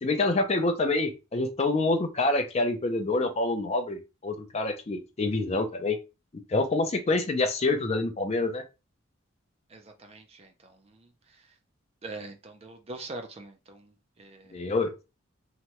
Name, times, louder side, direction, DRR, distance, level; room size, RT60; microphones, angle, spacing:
voice 1, 0.0-6.0 6.5-8.6 14.5-15.1, left 2 dB, 30° left, 0.4 m, -27 dB
voice 2, 9.7-11.5 12.0-14.7, right 2 dB, 30° right, 0.4 m, -44 dB
2.9 x 2.2 x 2.9 m
head